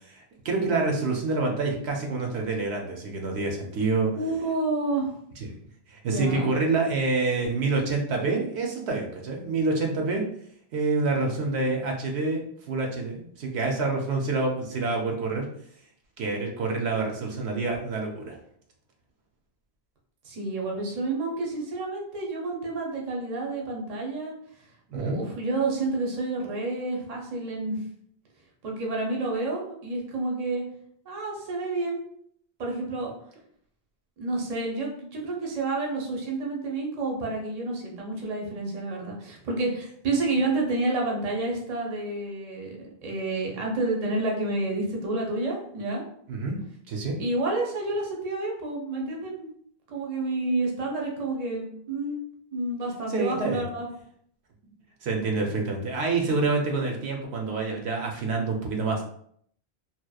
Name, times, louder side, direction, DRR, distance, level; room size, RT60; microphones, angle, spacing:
voice 1, 0.0-4.2 5.9-10.2 10.7-15.5 16.2-18.4 24.9-25.2 46.3-46.6 46.9-47.2 53.1-53.6 55.0-59.0, right 3 dB, 75° right, 1 dB, 0.8 m, -27 dB
voice 2, 4.2-5.1 6.1-6.5 20.2-24.3 24.9-27.8 28.6-30.6 31.1-32.0 32.6-33.1 34.2-42.8 43.0-46.0 47.2-49.5 49.9-52.2 52.5-53.9, right 2 dB, 45° right, -1 dB, 0.6 m, -29 dB
2.8 x 2.0 x 2.3 m, 0.66 s
omnidirectional pair, 1.1 m